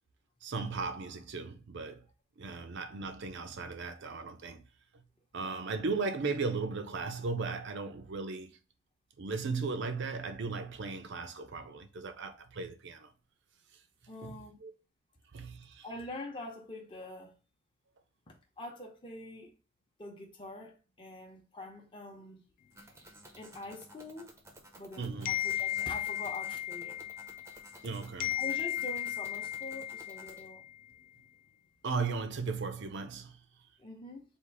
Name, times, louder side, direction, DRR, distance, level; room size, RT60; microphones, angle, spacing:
voice 1, 0.4-2.0 2.4-4.6 4.9-5.0 5.3-8.5 9.2-13.1 14.2-14.7 15.3-15.9 25.0-25.3 27.8-28.4 31.8-33.4, right 4 dB, 60° right, 0.5 m, -36 dB
voice 2, 14.1-14.6 15.8-17.3 18.3-19.5 20.0-22.4 23.4-24.3 24.8-27.0 28.3-30.7 33.8-34.2, left 1 dB, 25° left, 0.7 m, -45 dB
sound 1, 22.7-30.5, right 1 dB, 15° right, 0.6 m, -55 dB
sound 2, 25.2-27.9 28.2-30.8, left 12 dB, 45° left, 0.3 m, -35 dB
3.6 x 2.5 x 4.6 m
head